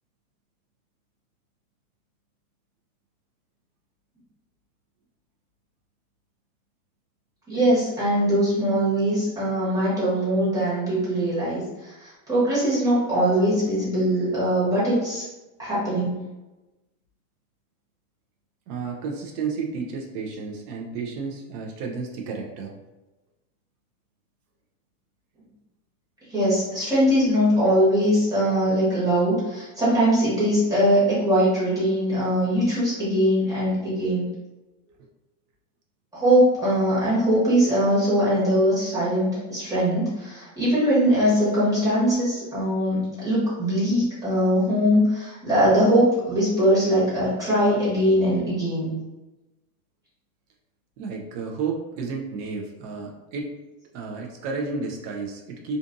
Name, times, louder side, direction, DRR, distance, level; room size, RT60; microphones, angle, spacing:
voice 1, 7.5-15.2 15.6-16.2 26.3-34.3 36.1-48.9, equal, 10° right, -10 dB, 1.0 m, -21 dB
voice 2, 18.7-22.7 51.0-53.5 53.9-55.8, right 4 dB, 80° right, 1 dB, 0.7 m, -32 dB
2.6 x 2.4 x 2.5 m, 1.1 s
supercardioid pair, 155°, 45 cm